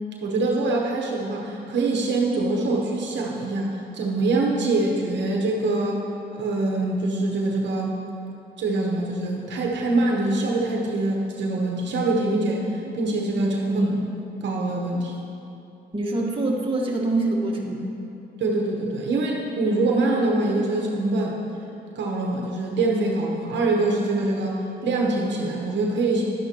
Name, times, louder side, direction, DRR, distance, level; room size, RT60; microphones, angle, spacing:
voice 1, 0.2-6.0 6.3-8.0 8.6-14.1 14.4-15.2 18.4-21.4 22.0-26.2, right 2 dB, 65° right, -1 dB, 1.1 m, -24 dB
voice 2, 15.9-18.0, right 2 dB, 25° right, -2 dB, 1.4 m, -25 dB
11.5 x 9.0 x 2.9 m, 2.8 s
cardioid pair, 90°, 20 cm